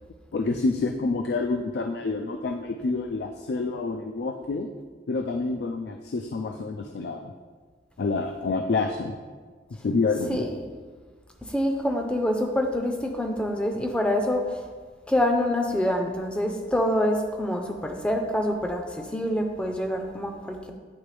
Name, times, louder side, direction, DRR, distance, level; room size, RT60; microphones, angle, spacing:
voice 1, 0.3-4.7 5.1-7.3 8.0-9.1 9.7-10.5, left 3 dB, 65° left, 5 dB, 0.3 m, -28 dB
voice 2, 10.3-10.6 11.5-14.6 15.1-20.7, left 1 dB, 5° left, 2 dB, 0.5 m, -26 dB
9.6 x 3.4 x 3.2 m, 1.5 s
head